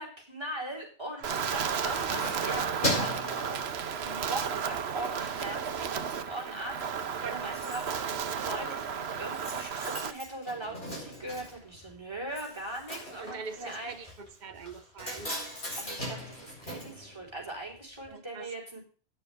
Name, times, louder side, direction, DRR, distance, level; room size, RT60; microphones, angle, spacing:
voice 1, 0.0-3.6 4.0-13.9 15.8-18.8, right 1 dB, 25° right, 4.4 m, -40 dB
Keys jangling, 1.2-4.3 4.8-5.0 5.4-6.1 6.3-6.4 6.7-6.8 7.0-17.8 18.0-18.1, equal, 50° left, 5.8 m, -39 dB
Wind, 1.2-10.1, right 7 dB, 75° right, 1.1 m, -33 dB
voice 2, 13.2-15.4 18.1-18.5, right 5 dB, 45° right, 1.0 m, -43 dB
10.0 x 6.8 x 7.8 m
omnidirectional pair, 1.1 m